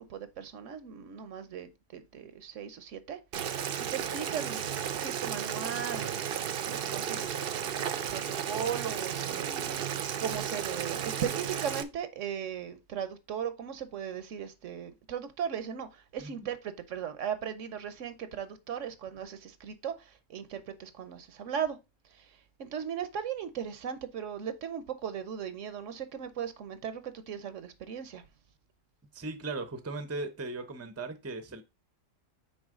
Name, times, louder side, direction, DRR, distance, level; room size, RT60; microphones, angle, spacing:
voice 1, 0.0-3.2 3.9-6.2 6.6-7.5 8.1-21.8 22.0-28.3, right 8 dB, 75° right, 1.1 m, -38 dB
Boiling, 3.3-11.8, right 8 dB, 55° right, 0.7 m, -34 dB
voice 2, 29.1-31.6, right 3 dB, 15° right, 0.6 m, -37 dB
6.3 x 4.6 x 3.7 m
omnidirectional pair, 1.4 m